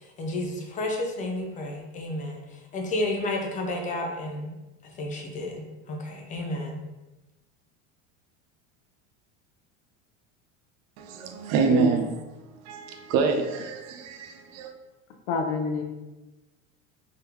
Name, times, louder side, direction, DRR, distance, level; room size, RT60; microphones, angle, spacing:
voice 1, 0.2-2.4 2.7-4.6 4.8-6.8, left 1 dB, 20° left, 0.6 m, -31 dB
voice 2, 11.0-12.1 12.7-14.7, right 5 dB, 50° right, 0.6 m, -26 dB
voice 3, 15.3-15.8, left 3 dB, 75° left, 0.8 m, -26 dB
3.7 x 3.6 x 2.8 m
cardioid pair, 155°, 35 cm